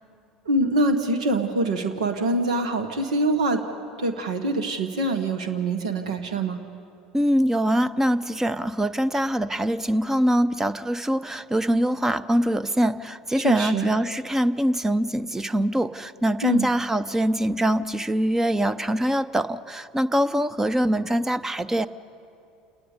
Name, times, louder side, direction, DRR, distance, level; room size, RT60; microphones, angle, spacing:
voice 1, 0.5-3.6 4.0-6.6 13.4-13.9 16.4-16.7, right 2 dB, 85° right, 7 dB, 1.1 m, -24 dB
voice 2, 7.1-21.9, equal, 10° right, 12 dB, 0.6 m, -23 dB
27.5 x 9.9 x 9.6 m, 2.5 s
hypercardioid pair, 75°, 4 cm